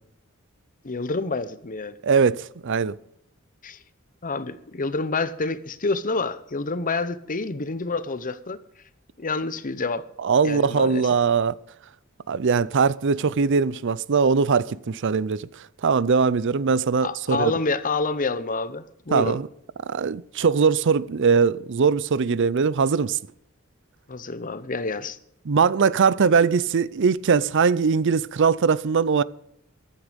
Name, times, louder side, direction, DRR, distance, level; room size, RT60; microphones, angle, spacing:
voice 1, 0.8-2.0 3.6-3.8 4.2-8.6 9.2-10.1 10.4-11.1 17.0-19.4 24.1-25.2, left 3 dB, 40° left, 0.9 m, -28 dB
voice 2, 2.0-2.9 10.2-11.5 12.3-15.5 15.8-17.5 19.1-19.5 19.9-23.2 25.5-29.2, right 5 dB, 60° right, 0.5 m, -21 dB
15.0 x 11.5 x 5.2 m
head